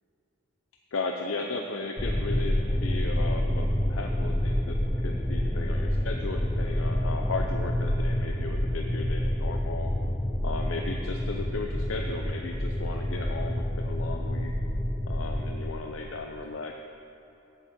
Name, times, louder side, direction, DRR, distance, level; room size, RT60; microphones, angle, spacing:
voice 1, 0.9-9.9 10.4-14.5 15.1-16.8, left 3 dB, 85° left, 2 dB, 0.6 m, -36 dB
sound 1, 2.0-15.7, equal, 15° left, 0.6 m, -28 dB
8.3 x 7.9 x 7.6 m, 3.0 s
head